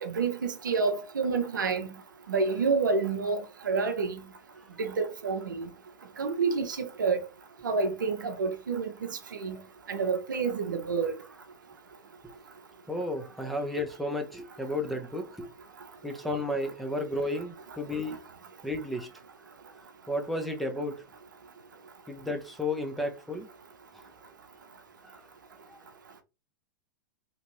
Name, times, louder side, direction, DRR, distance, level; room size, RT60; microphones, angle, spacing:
voice 1, 0.0-1.9 2.3-4.2 4.8-5.7 6.2-7.2 7.6-9.6 9.9-11.2, right 4 dB, 80° right, 0.6 m, -29 dB
voice 2, 12.9-15.5 16.0-18.2 18.6-19.1 20.1-21.0 22.1-23.5 23.9-24.0 25.0-25.2 25.7-25.8, left 1 dB, ahead, 0.6 m, -33 dB
2.9 x 2.5 x 3.0 m
hypercardioid pair, 105°, 10 cm